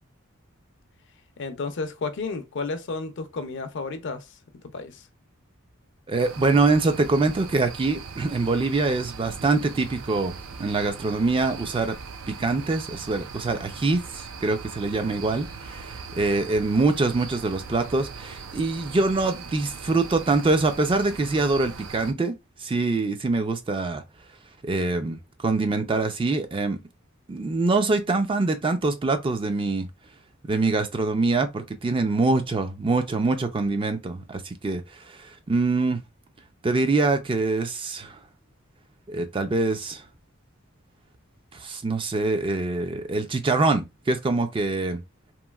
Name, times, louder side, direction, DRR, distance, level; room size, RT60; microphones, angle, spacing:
voice 1, 1.4-4.3 4.7-5.0, left 4 dB, 60° left, 0.5 m, -32 dB
voice 2, 6.1-11.9 12.3-22.3 22.6-24.0 24.6-26.8 27.3-29.9 30.4-36.0 36.6-38.2 39.1-40.0 41.5-45.0, right 3 dB, 25° right, 0.4 m, -24 dB
sound 1, 6.2-22.1, right 5 dB, 85° right, 0.4 m, -40 dB
3.0 x 2.5 x 2.3 m
head